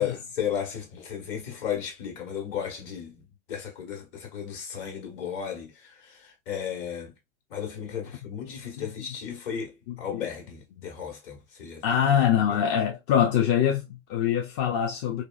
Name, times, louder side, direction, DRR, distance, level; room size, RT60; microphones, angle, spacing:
voice 1, 0.0-7.2 7.5-11.8 12.5-12.6, left 8 dB, 50° left, 1.5 m, -34 dB
voice 2, 11.8-15.2, left 9 dB, 35° left, 0.5 m, -24 dB
2.7 x 2.4 x 2.4 m
hypercardioid pair, 105°, 35 cm